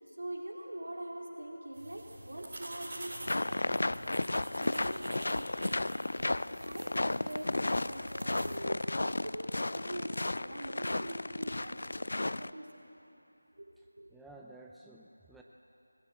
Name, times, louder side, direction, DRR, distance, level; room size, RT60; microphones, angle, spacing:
voice 1, 0.2-3.8 4.6-6.1 6.6-7.5 7.8-8.8 9.2-12.8 13.6-14.1, right 1 dB, 65° right, -2 dB, 3.7 m, -44 dB
sound 1, 1.7-8.6, right 1 dB, 35° right, 5.6 m, -47 dB
sound 2, 3.3-12.5, left 2 dB, 55° left, 0.4 m, -33 dB
voice 2, 14.1-15.4, right 2 dB, ahead, -3 dB, 0.4 m, -54 dB
19.5 x 15.5 x 8.6 m, 3.0 s
figure-of-eight pair, 165°, 0 cm